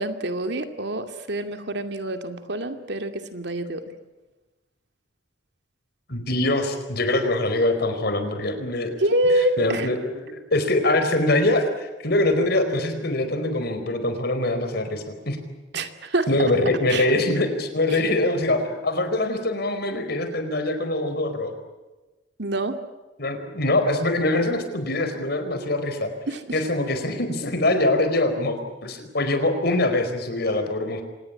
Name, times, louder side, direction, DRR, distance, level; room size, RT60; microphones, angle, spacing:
voice 1, 0.0-3.8 9.0-9.9 15.7-16.3 16.9-17.1 22.4-22.8 26.3-26.6, right 1 dB, 65° right, 7 dB, 2.4 m, -26 dB
voice 2, 6.1-9.0 9.6-15.4 16.3-21.5 23.2-26.1 26.5-31.0, left 2 dB, 60° left, 8 dB, 4.6 m, -23 dB
26.0 x 20.0 x 8.6 m, 1.1 s
head